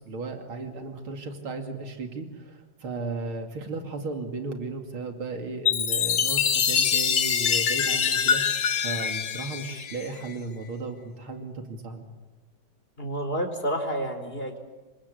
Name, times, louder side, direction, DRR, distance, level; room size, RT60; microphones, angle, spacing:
voice 1, 0.0-8.4 8.8-12.1, right 3 dB, 85° right, 4 dB, 3.4 m, -35 dB
Chime, 5.7-10.3, left 7 dB, 55° left, 1.8 m, -25 dB
voice 2, 13.0-14.6, right 1 dB, 25° left, 6 dB, 4.4 m, -29 dB
28.5 x 23.5 x 8.5 m, 1.2 s
omnidirectional pair, 2.2 m